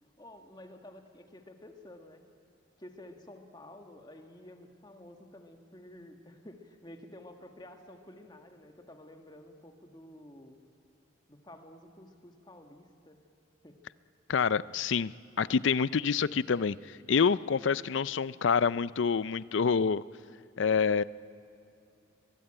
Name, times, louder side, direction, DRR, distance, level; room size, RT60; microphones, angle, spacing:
voice 1, 0.2-2.2 2.8-10.6 11.3-13.2 13.6-13.8, left 1 dB, 20° left, 5 dB, 1.8 m, -51 dB
voice 2, 14.3-15.1 15.4-16.8 17.1-20.0 20.6-21.0, left 6 dB, 70° left, 18 dB, 0.5 m, -27 dB
23.0 x 22.5 x 9.0 m, 2.6 s
head